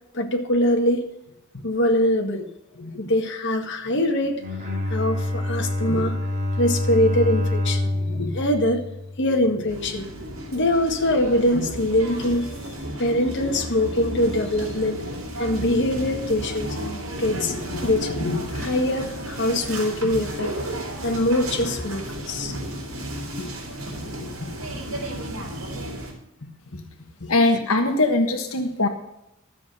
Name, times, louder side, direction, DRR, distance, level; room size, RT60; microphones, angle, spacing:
voice 1, 0.1-1.1 1.6-2.4 2.7-4.4 4.9-6.2 6.6-8.8 9.2-10.1 10.5-12.5 13.0-15.0 15.4-16.8 17.2-20.5 21.0-22.6 23.4-23.5 24.2-24.5 24.9-25.0 26.7-26.8 27.2-27.3, left 1 dB, 60° left, 3 dB, 1.7 m, -23 dB
Bowed string instrument, 4.3-9.6, left 1 dB, 35° right, 4.0 m, -26 dB
sound 1, 9.7-26.1, right 1 dB, 90° right, 4.3 m, -33 dB
voice 2, 27.3-28.9, left 2 dB, 85° left, 4 dB, 1.4 m, -20 dB
13.0 x 7.4 x 6.5 m, 0.86 s
head